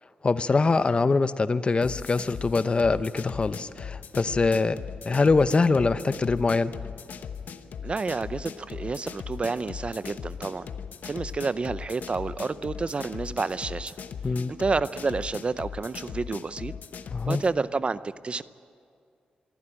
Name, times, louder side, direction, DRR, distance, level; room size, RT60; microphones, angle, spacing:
voice 1, 0.2-4.8 5.0-6.7 14.2-14.5 17.1-17.4, left 3 dB, 35° left, 14 dB, 0.7 m, -23 dB
sound 1, 1.8-17.5, left 7 dB, 75° left, 1.0 m, -39 dB
voice 2, 7.8-10.7 11.0-13.9 14.6-16.7 17.3-18.4, right 4 dB, 40° right, 15 dB, 0.6 m, -29 dB
24.5 x 14.5 x 9.9 m, 2.4 s
cardioid pair, 80°, 3 cm